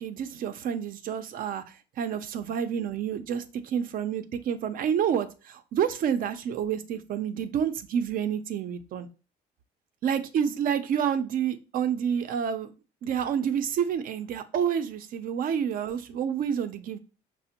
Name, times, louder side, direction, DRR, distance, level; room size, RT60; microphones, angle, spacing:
voice 1, 0.0-1.6 2.0-9.1 10.0-12.7 13.0-17.0, right 8 dB, 55° right, 10 dB, 0.5 m, -29 dB
5.0 x 2.0 x 2.8 m, 0.33 s
cardioid pair, 110°, 17 cm